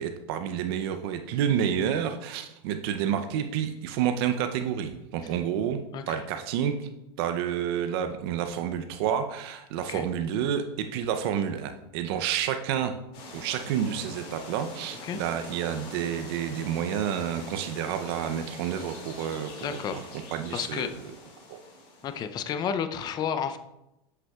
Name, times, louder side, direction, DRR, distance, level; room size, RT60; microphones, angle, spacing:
voice 1, 0.0-5.8 6.1-6.9 7.2-12.9 13.3-20.0 20.3-20.9 21.5-21.6, right 9 dB, 65° right, 7 dB, 0.6 m, -29 dB
voice 2, 5.9-6.3 9.9-10.1 15.0-15.2 19.6-20.0 20.5-21.0 22.0-23.6, left 8 dB, 30° left, 10 dB, 0.5 m, -31 dB
sound 1, 13.1-22.4, left 2 dB, 50° left, 2.3 m, -44 dB
7.8 x 6.0 x 2.3 m, 0.87 s
supercardioid pair, 125°, 14 cm